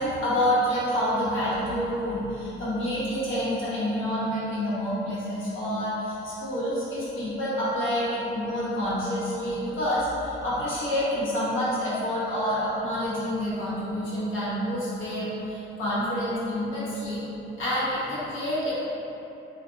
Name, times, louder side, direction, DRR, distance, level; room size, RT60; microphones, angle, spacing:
voice 1, 0.0-17.2 17.6-18.8, equal, 80° left, -10 dB, 1.1 m, -28 dB
2.5 x 2.4 x 3.7 m, 3.0 s
cardioid pair, 90°, 20 cm